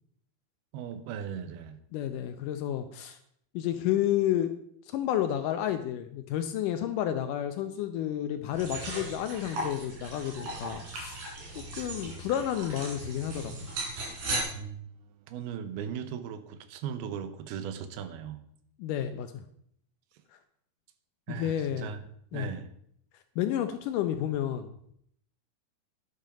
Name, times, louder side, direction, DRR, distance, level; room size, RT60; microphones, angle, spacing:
voice 1, 0.7-1.8 14.5-15.0 15.3-18.4 21.3-22.0 22.3-22.7, right 8 dB, 80° right, 11 dB, 2.8 m, -38 dB
voice 2, 1.9-3.2 3.5-4.5 4.9-11.3 11.8-13.7 18.8-19.4 21.3-21.9 22.3-22.5 23.4-24.7, left 11 dB, 80° left, 8 dB, 1.9 m, -31 dB
sound 1, 8.5-14.4, right 2 dB, 55° right, 5.0 m, -37 dB
10.5 x 10.5 x 5.1 m, 0.68 s
omnidirectional pair, 4.5 m